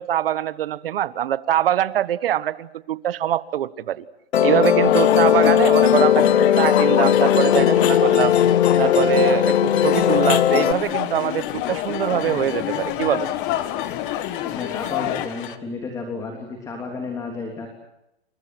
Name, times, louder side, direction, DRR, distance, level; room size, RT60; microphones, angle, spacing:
voice 1, 0.0-4.0 4.4-8.3 8.8-13.3, right 11 dB, 60° right, 15 dB, 1.4 m, -23 dB
Musical instrument, 4.3-10.7, left 10 dB, 80° left, 1.2 m, -17 dB
sound 1, 4.8-15.3, left 13 dB, 25° left, 1.4 m, -27 dB
sound 2, 7.0-15.6, left 11 dB, 55° left, 1.8 m, -39 dB
voice 2, 14.4-17.7, left 4 dB, 10° left, 2 dB, 3.3 m, -32 dB
29.5 x 28.5 x 6.2 m, 0.83 s
hypercardioid pair, 160°, 32 cm